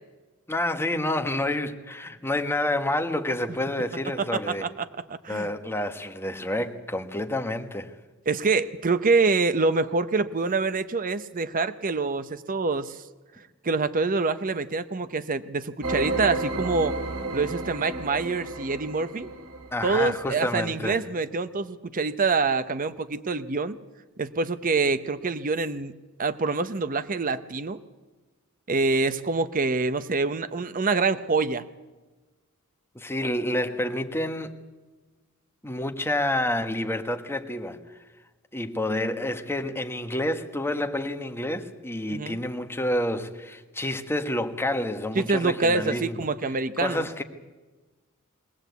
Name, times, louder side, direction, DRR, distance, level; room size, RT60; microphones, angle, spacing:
voice 1, 0.5-4.7 5.3-7.9 19.7-21.0 32.9-34.5 35.6-37.8 38.5-46.3 46.8-47.2, left 1 dB, 10° left, 1.3 m, -29 dB
voice 2, 4.3-5.5 8.3-13.0 13.6-17.0 17.3-19.3 19.8-23.8 24.2-25.9 26.2-27.8 28.7-31.7 42.1-42.4 45.2-47.1, right 3 dB, 40° right, 0.7 m, -26 dB
sound 1, 15.8-20.1, right 2 dB, 70° right, 2.5 m, -32 dB
22.5 x 17.5 x 8.2 m
head